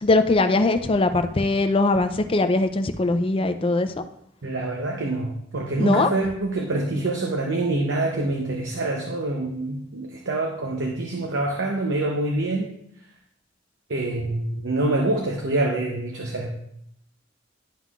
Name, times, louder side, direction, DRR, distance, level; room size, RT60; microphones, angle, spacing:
voice 1, 0.0-4.0 5.8-6.1, left 2 dB, 30° left, 8 dB, 0.4 m, -21 dB
voice 2, 4.4-12.7 13.9-16.5, right 2 dB, 75° right, 1 dB, 0.8 m, -26 dB
11.0 x 5.6 x 2.4 m, 0.72 s
head